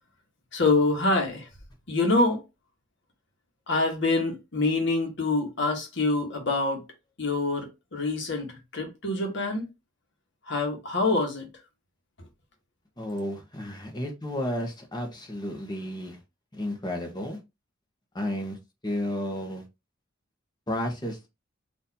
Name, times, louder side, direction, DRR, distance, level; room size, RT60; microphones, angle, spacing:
voice 1, 0.5-1.4 1.9-2.4 3.7-6.8 7.2-8.5 8.7-9.7 10.5-11.5, left 2 dB, 60° left, 1.2 m, -25 dB
voice 2, 13.0-16.2 16.5-17.4 18.1-18.6 18.8-19.6 20.7-21.3, left 1 dB, 20° left, 1.0 m, -32 dB
4.0 x 2.7 x 2.8 m
head